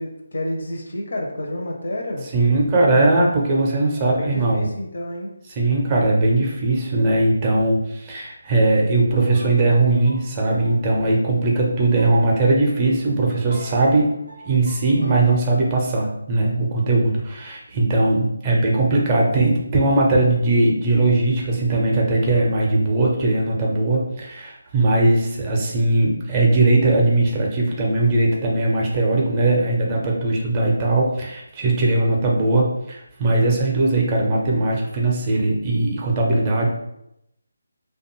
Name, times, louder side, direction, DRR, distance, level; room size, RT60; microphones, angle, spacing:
voice 1, 0.0-2.3 3.9-5.3, left 1 dB, 55° left, 1 dB, 0.5 m, -29 dB
voice 2, 2.3-4.7 5.6-14.1 14.4-36.7, right 2 dB, 20° right, -2 dB, 0.5 m, -19 dB
sound 1, 9.1-15.2, equal, 90° left, 0.9 m, -41 dB
2.5 x 2.2 x 2.9 m, 0.82 s
figure-of-eight pair, 150°, 0 cm